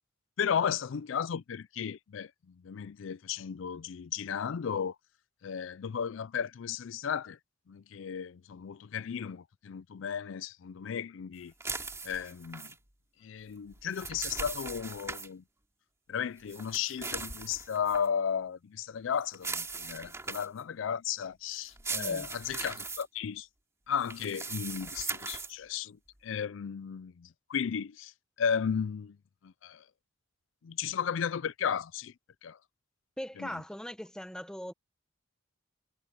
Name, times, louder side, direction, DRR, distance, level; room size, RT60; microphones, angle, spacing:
voice 1, 0.4-2.3 2.6-4.9 5.4-7.4 7.7-11.5 12.0-12.7 13.2-15.4 16.1-23.5 23.9-26.0 26.2-28.1 28.4-29.1 29.6-29.8 30.6-32.1 32.4-32.6 33.4-33.5, left 7 dB, 70° left, 0.4 m, -34 dB
sound 1, 11.6-12.7 13.7-15.3 16.5-18.1 19.3-20.6 21.6-23.0 24.0-25.5, right 4 dB, 15° right, 2.5 m, -39 dB
voice 2, 21.9-22.3 33.2-34.7, equal, 5° left, 1.1 m, -40 dB
head